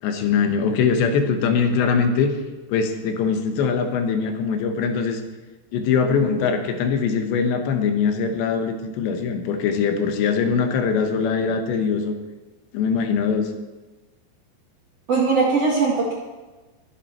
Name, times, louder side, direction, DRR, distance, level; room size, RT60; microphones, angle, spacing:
voice 1, 0.0-2.3 2.7-5.2 5.7-12.1 12.7-13.5, left 6 dB, 80° left, 6 dB, 3.4 m, -22 dB
voice 2, 15.1-16.1, right 4 dB, 45° right, -3 dB, 2.2 m, -20 dB
21.5 x 8.5 x 4.5 m, 1.2 s
omnidirectional pair, 5.1 m